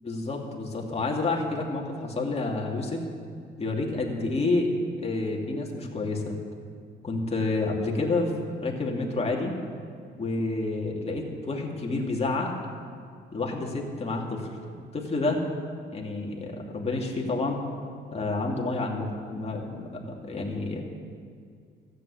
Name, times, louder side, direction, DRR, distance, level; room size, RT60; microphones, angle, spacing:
voice 1, 0.0-3.0 3.6-4.7 5.0-6.4 7.0-9.6 10.2-12.5 13.3-14.5 14.9-15.4 15.9-17.6 18.1-20.8, left 3 dB, 30° left, -1 dB, 2.5 m, -29 dB
13.5 x 8.2 x 8.4 m, 2.3 s
cardioid pair, 90°, 20 cm